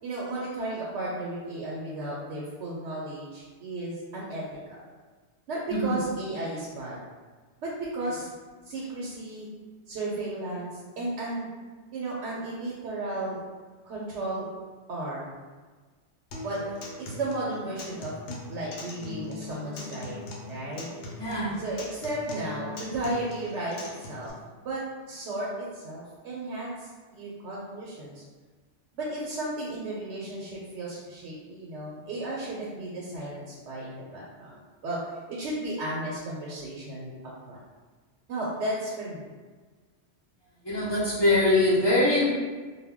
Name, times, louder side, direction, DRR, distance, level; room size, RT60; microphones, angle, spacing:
voice 1, 0.0-4.4 4.7-4.8 5.5-7.0 7.6-8.3 8.6-9.5 9.9-11.5 11.9-13.4 13.8-14.5 14.9-15.3 16.4-18.1 18.5-20.9 21.6-24.3 24.6-28.2 28.9-34.6 34.8-35.0 35.3-37.1 37.5-37.6 38.3-39.3, right 2 dB, 85° right, -5 dB, 0.9 m, -34 dB
Acoustic guitar, 16.3-24.3, left 2 dB, 90° left, 0.9 m, -41 dB
voice 2, 21.2-21.6 40.6-42.3, left 1 dB, 40° left, -8 dB, 0.4 m, -23 dB
2.1 x 2.1 x 3.5 m, 1.4 s
omnidirectional pair, 1.2 m